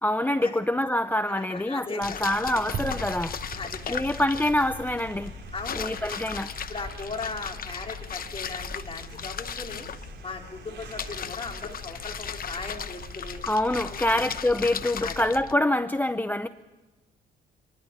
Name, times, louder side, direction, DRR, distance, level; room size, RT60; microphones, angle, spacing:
voice 1, 0.0-3.4 3.9-5.3 5.8-6.5 13.5-16.5, left 1 dB, 10° left, 11 dB, 0.6 m, -25 dB
voice 2, 1.3-2.4 3.5-4.0 5.5-5.9 6.7-9.9 10.2-13.4 14.0-14.3 15.0-15.2, left 3 dB, 30° left, 1 dB, 3.2 m, -38 dB
sound 1, 2.0-15.5, left 7 dB, 45° left, 0.9 m, -37 dB
sound 2, 2.5-14.4, right 5 dB, 60° right, 4.4 m, -43 dB
28.0 x 11.0 x 9.8 m, 1.2 s
cardioid pair, 90°, 20 cm